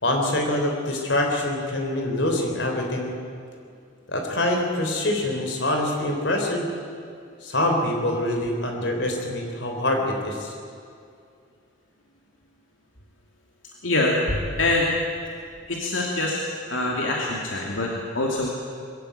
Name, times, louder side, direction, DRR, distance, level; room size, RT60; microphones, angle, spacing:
voice 1, 0.0-3.1 4.1-6.7 7.4-10.5, left 1 dB, 65° left, 2 dB, 3.9 m, -25 dB
voice 2, 13.8-14.9 15.7-16.4 16.7-18.5, left 2 dB, 85° left, -2 dB, 2.7 m, -24 dB
21.5 x 15.5 x 9.3 m, 2.3 s
head